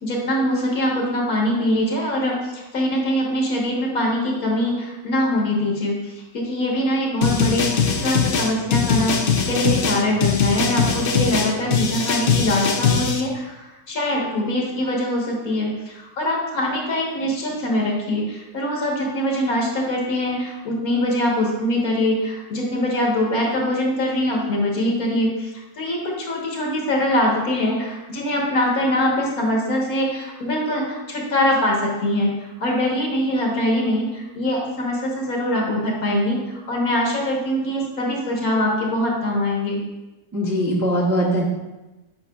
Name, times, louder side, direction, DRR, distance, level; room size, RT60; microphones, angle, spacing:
voice 1, 0.0-6.0 6.3-9.2 9.5-32.3 32.6-39.8, left 1 dB, 60° left, -1 dB, 1.6 m, -23 dB
sound 1, 7.2-13.2, left 6 dB, 85° left, 0.5 m, -21 dB
voice 2, 40.3-41.4, equal, 15° right, -6 dB, 0.7 m, -21 dB
7.9 x 5.5 x 2.3 m, 1.1 s
omnidirectional pair, 1.7 m